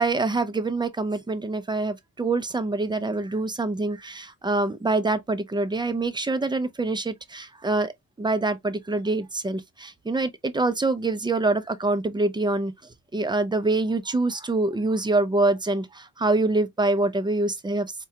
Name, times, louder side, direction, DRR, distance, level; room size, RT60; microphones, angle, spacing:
voice 1, 0.0-7.9 8.2-17.9, right 2 dB, 15° right, 0.3 m, -25 dB
4.6 x 2.2 x 2.7 m
wide cardioid pair, 135°, 34 cm